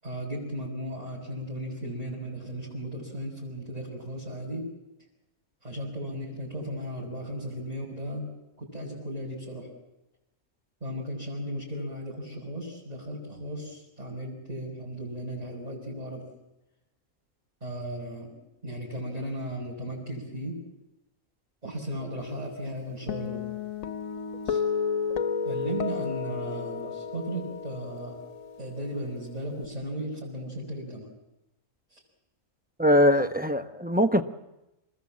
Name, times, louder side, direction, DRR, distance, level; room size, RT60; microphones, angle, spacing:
voice 1, 0.0-4.7 5.6-8.3 8.6-9.7 10.8-16.2 17.6-18.3 18.6-20.6 21.6-23.5 24.4-24.6 25.4-28.2 28.6-31.1 31.9-32.0, right 1 dB, 30° right, -6 dB, 5.9 m, -36 dB
Guitar, 23.1-29.6, left 6 dB, 85° left, 1.4 m, -32 dB
voice 2, 32.8-34.2, equal, 10° right, 7 dB, 0.7 m, -21 dB
27.0 x 20.0 x 7.3 m, 0.94 s
omnidirectional pair, 1.4 m